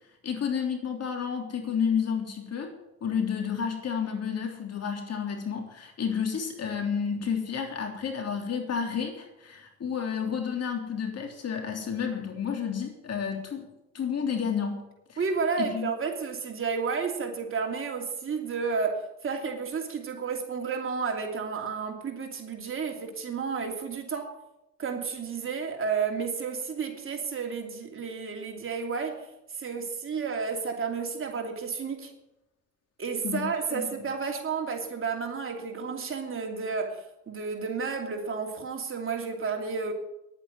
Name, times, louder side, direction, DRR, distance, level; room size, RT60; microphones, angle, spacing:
voice 1, 0.2-2.7 3.0-13.7 13.9-14.8 15.1-15.2 15.6-15.9 33.2-33.9, left 7 dB, 55° left, 3 dB, 3.5 m, -31 dB
voice 2, 15.2-24.3 24.8-29.3 29.5-32.1 33.0-39.9, right 5 dB, 45° right, 3 dB, 2.9 m, -31 dB
10.5 x 8.9 x 9.9 m, 0.90 s
cardioid pair, 90°, 30 cm